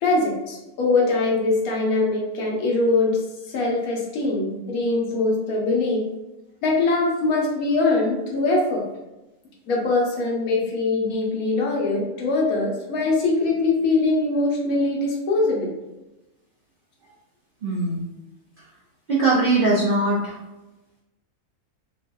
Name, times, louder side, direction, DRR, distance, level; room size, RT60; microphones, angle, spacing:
voice 1, 0.0-3.2 3.5-6.1 6.6-8.8 9.7-15.7, left 3 dB, 75° left, -1 dB, 1.2 m, -22 dB
voice 2, 17.6-18.1 19.1-20.3, right 2 dB, 65° right, -6 dB, 0.5 m, -21 dB
3.0 x 2.7 x 2.2 m, 1.0 s
omnidirectional pair, 1.5 m